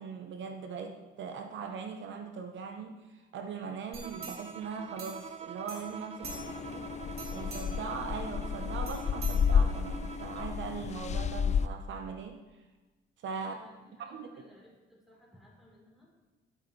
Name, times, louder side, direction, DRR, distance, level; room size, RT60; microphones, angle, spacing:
voice 1, 0.0-6.3 6.6-6.9 7.3-12.4 13.2-13.6 14.0-14.3, right 5 dB, 70° right, 5 dB, 0.8 m, -40 dB
sound 1, 3.9-5.4 5.7-6.7 7.1-7.9 8.9-10.0 10.4-10.5, right 4 dB, 55° right, 2.6 m, -46 dB
Bowed string instrument, 4.0-10.7, right 6 dB, 30° right, 0.4 m, -46 dB
voice 2, 6.1-6.9 13.4-16.1, left 1 dB, ahead, -3 dB, 3.7 m, -59 dB
sound 2, 6.2-11.7, left 6 dB, 35° left, 0.4 m, -31 dB
12.0 x 8.4 x 3.2 m, 1.2 s
cardioid pair, 90°, 20 cm